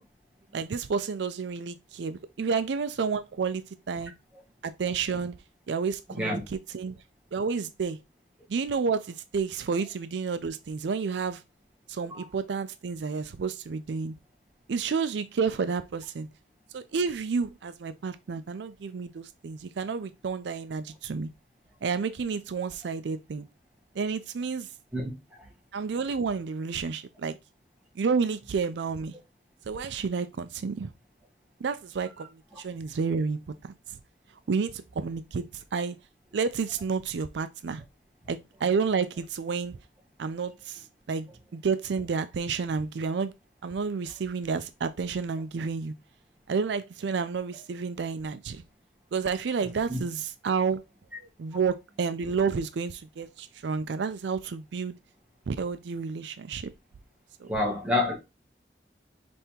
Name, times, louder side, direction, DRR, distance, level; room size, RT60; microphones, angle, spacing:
voice 1, 0.5-4.1 4.6-5.4 5.7-7.0 7.3-8.0 8.5-11.4 11.9-14.1 14.7-16.3 16.7-21.3 21.8-23.5 24.0-24.7 25.7-27.4 28.0-29.2 29.7-30.9 31.6-33.4 34.5-35.4 35.7-36.0 36.3-37.8 38.3-39.8 40.2-40.8 41.1-43.3 43.6-45.9 46.5-48.6 49.1-50.8 51.2-54.9 55.5-56.7 57.4-57.5, right 5 dB, 80° right, 0.4 m, -30 dB
voice 2, 24.9-25.4 32.5-32.6 49.9-50.0 57.5-58.1, left 2 dB, 5° right, 1.4 m, -29 dB
5.3 x 3.4 x 2.9 m
head